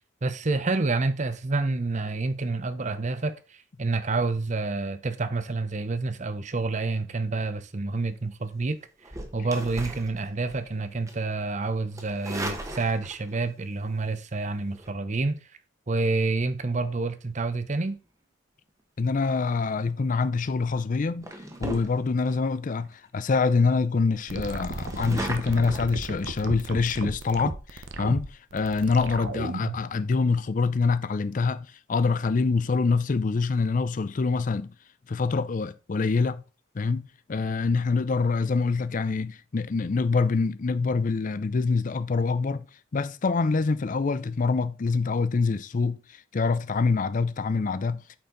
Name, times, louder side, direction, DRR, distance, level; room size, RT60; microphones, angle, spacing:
voice 1, 0.2-3.3 3.8-8.8 9.3-15.4 15.9-18.0, right 3 dB, 35° right, 0.6 m, -28 dB
sound 1, 9.0-10.7 11.1-11.3 11.9-13.4 14.7-14.9 19.9-20.2 20.7-20.8 21.2-22.3 22.8-22.9 23.2-23.3 23.6-23.7 24.1-25.8, right 1 dB, 15° right, 1.0 m, -37 dB
voice 2, 19.0-21.3 21.6-34.7 35.1-36.4 36.7-37.0 37.3-42.7 42.9-48.2, left 4 dB, 40° left, 0.4 m, -25 dB
sound 2, 24.3-29.9, right 3 dB, 70° right, 0.8 m, -35 dB
8.6 x 4.4 x 3.8 m
head